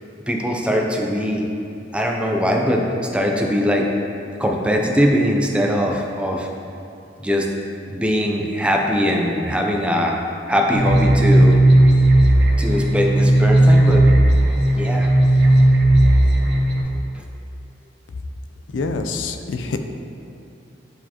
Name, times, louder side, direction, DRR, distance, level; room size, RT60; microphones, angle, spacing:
voice 1, 0.3-1.4 1.9-2.8 3.1-3.9 4.4-6.5 7.2-7.5 7.9-10.2 10.5-11.6 12.6-14.1 14.7-15.1, equal, 5° right, 0 dB, 0.5 m, -21 dB
sound 1, 10.7-16.8, right 1 dB, 65° right, 0.6 m, -14 dB
voice 2, 18.7-19.8, left 3 dB, 80° left, 7 dB, 0.4 m, -25 dB
8.2 x 4.6 x 2.9 m, 2.7 s
head